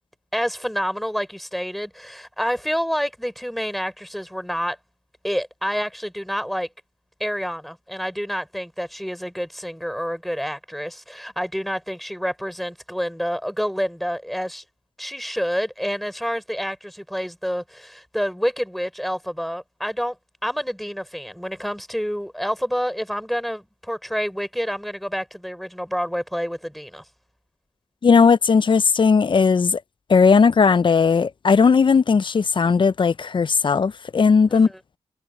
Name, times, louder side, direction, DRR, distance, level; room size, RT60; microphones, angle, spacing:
voice 1, 0.3-4.8 5.2-6.7 7.2-14.6 15.0-20.2 20.4-27.0 34.5-34.7, equal, ahead, 4.5 m, -28 dB
voice 2, 28.0-29.8 30.1-34.7, left 5 dB, 40° left, 0.5 m, -17 dB
cardioid pair, 70°, 12 cm